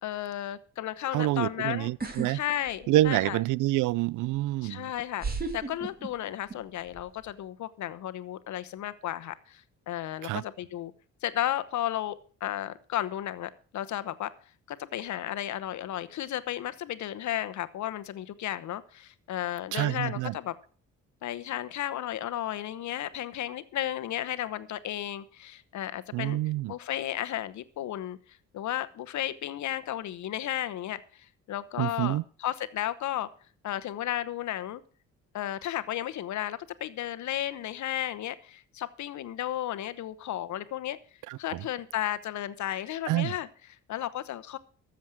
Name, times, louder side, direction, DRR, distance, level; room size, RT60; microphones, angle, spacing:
voice 1, 0.0-1.9 2.3-3.4 4.6-5.2 5.5-10.9 11.2-12.2 12.4-14.3 14.7-20.5 21.2-26.4 26.7-28.2 28.5-33.3 33.6-34.8 35.3-41.0 41.4-43.5 43.9-44.6, left 12 dB, 70° left, 1.0 m, -33 dB
voice 2, 1.1-2.4 2.9-4.9 10.2-10.4 19.7-20.3 26.1-26.7 31.8-32.2 41.3-41.6 43.1-43.3, right 16 dB, 80° right, 0.5 m, -27 dB
sound 1, 2.0-2.3 2.7-3.3 4.3-4.4 5.2-6.6 6.9-7.3, right 4 dB, 30° right, 2.5 m, -34 dB
13.0 x 7.5 x 6.2 m
cardioid pair, 90°, 30 cm